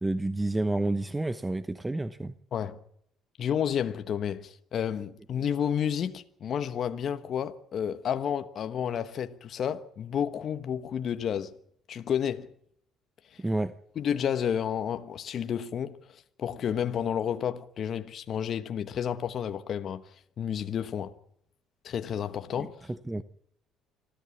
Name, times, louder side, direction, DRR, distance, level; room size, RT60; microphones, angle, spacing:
voice 1, 0.0-2.3 13.4-13.7 23.1-23.2, right 2 dB, 10° right, 1.0 m, -29 dB
voice 2, 3.4-11.5 11.9-12.5 13.3-13.4 14.0-21.1 21.8-22.9, left 8 dB, 50° left, 1.2 m, -31 dB
26.0 x 14.0 x 8.5 m
supercardioid pair, 90°, 0 cm